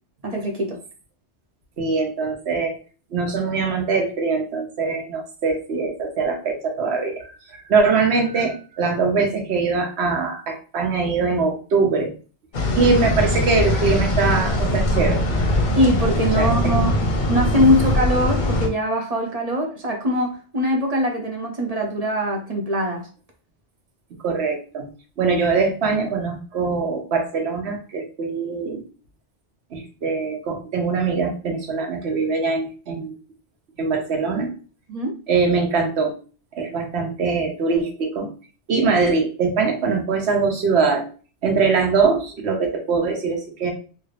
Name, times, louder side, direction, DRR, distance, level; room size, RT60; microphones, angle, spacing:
voice 1, 0.2-0.8 15.7-16.9 17.3-23.1 34.9-35.2, equal, 45° right, 2 dB, 0.5 m, -22 dB
voice 2, 1.8-2.8 3.1-12.1 12.8-15.2 16.3-16.7 24.2-24.9 25.2-28.8 29.7-33.1 33.8-34.5 35.3-36.1 36.5-38.3 38.7-41.1 41.4-43.7, right 4 dB, 70° right, 3 dB, 1.1 m, -22 dB
sound 1, 12.5-18.7, left 1 dB, 50° left, 0.7 m, -21 dB
3.2 x 2.4 x 3.2 m, 0.38 s
omnidirectional pair, 1.2 m